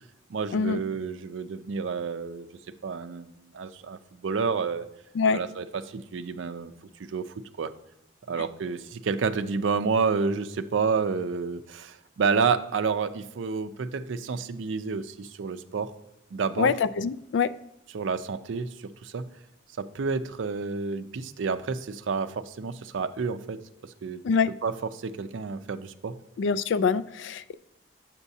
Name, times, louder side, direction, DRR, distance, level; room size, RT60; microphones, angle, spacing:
voice 1, 0.3-2.5 2.8-4.9 5.3-6.7 7.1-7.7 8.3-15.9 16.3-16.8 17.9-19.3 19.8-24.2 24.6-26.2, right 5 dB, 80° right, 10 dB, 0.4 m, -30 dB
voice 2, 16.6-17.5 24.2-24.5 26.4-27.5, left 5 dB, 70° left, 14 dB, 0.3 m, -24 dB
8.0 x 7.3 x 2.7 m, 0.87 s
head